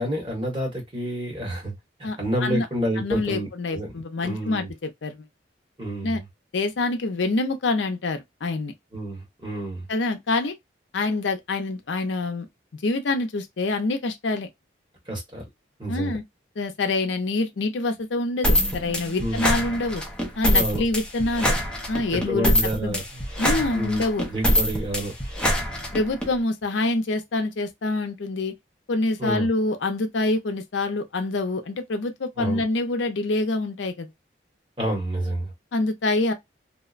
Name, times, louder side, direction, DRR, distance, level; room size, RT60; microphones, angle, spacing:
voice 1, 0.0-1.7 2.0-3.9 4.2-4.7 5.8-6.2 8.9-9.9 15.1-15.4 15.8-16.2 19.2-19.5 20.5-20.8 22.1-23.2 23.7-25.1 29.2-29.5 32.4-32.6 34.8-35.5, right 1 dB, 25° right, 1.3 m, -29 dB
voice 2, 2.0-2.7 3.0-5.3 6.0-6.2 6.5-8.7 9.9-10.5 10.9-12.5 12.8-14.5 15.9-16.2 16.6-20.0 20.4-21.6 21.9-22.5 22.8-23.0 23.4-24.3 25.9-28.5 28.9-34.1 35.7-36.3, left 2 dB, 80° left, 0.5 m, -26 dB
sound 1, 18.4-26.3, equal, 5° left, 0.6 m, -24 dB
2.8 x 2.1 x 2.4 m
head